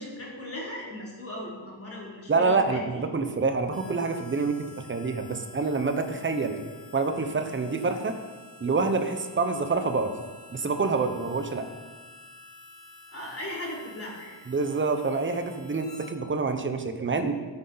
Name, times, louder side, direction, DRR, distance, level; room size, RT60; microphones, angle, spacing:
voice 1, 0.0-3.0 13.1-14.3, left 1 dB, 30° left, -4 dB, 3.1 m, -38 dB
voice 2, 2.3-6.6 6.9-8.1 8.6-10.1 10.5-11.6 14.5-17.3, right 4 dB, 25° right, 7 dB, 0.9 m, -27 dB
Harmonica, 3.7-16.1, left 2 dB, ahead, 1.8 m, -50 dB
12.5 x 9.8 x 4.0 m, 1.4 s
wide cardioid pair, 155°, 46 cm